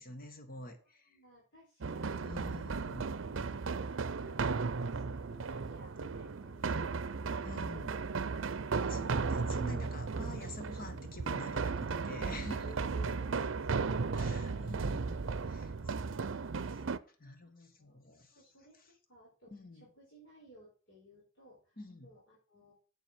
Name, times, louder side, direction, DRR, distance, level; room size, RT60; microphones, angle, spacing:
voice 1, 0.0-1.2 2.2-3.1 7.4-7.9 8.9-12.8 14.1-15.7 16.6-18.4 19.5-19.9 21.8-22.1, left 1 dB, 45° left, 7 dB, 1.6 m, -48 dB
voice 2, 1.1-2.5 3.4-8.5 9.7-9.9 12.6-14.7 15.6-16.2 17.2-17.5 17.8-18.0 18.3-22.7, equal, 70° left, -6 dB, 4.5 m, -58 dB
sound 1, 1.8-17.0, right 4 dB, 75° right, 0.6 m, -35 dB
8.0 x 7.4 x 6.3 m, 0.38 s
head